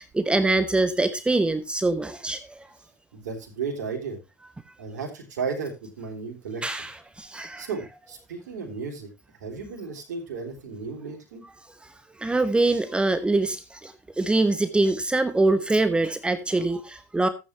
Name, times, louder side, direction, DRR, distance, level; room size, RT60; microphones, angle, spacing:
voice 1, 0.0-2.7 6.6-7.7 11.8-11.9 12.2-17.3, right 2 dB, 10° right, 11 dB, 1.0 m, -24 dB
voice 2, 3.1-4.2 4.8-6.8 7.6-9.1 9.4-11.4, right 5 dB, 75° right, 1 dB, 3.5 m, -34 dB
13.5 x 9.0 x 2.9 m, 0.26 s
hypercardioid pair, 85°, 9 cm